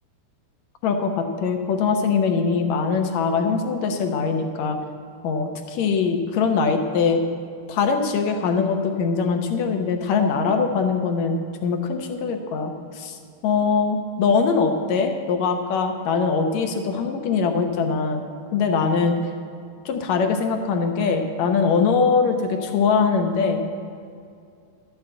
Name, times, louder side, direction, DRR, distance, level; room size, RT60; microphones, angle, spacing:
voice 1, 0.8-4.8 5.2-7.2 7.7-13.2 13.4-18.2 18.5-19.2 19.9-23.8, left 5 dB, 70° left, 5 dB, 1.8 m, -22 dB
12.5 x 7.1 x 7.7 m, 2.4 s
omnidirectional pair, 4.2 m